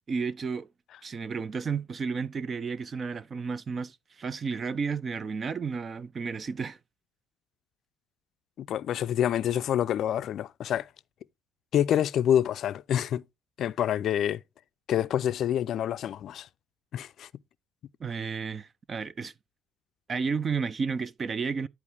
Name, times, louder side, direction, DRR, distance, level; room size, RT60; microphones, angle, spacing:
voice 1, 0.1-0.7 1.0-6.8 18.0-19.3 20.1-21.7, right 5 dB, 40° right, 0.6 m, -32 dB
voice 2, 8.6-10.9 11.7-13.2 13.6-14.4 14.9-16.5 16.9-17.3, left 10 dB, 55° left, 0.4 m, -27 dB
10.5 x 4.6 x 3.4 m
hypercardioid pair, 60°, 0 cm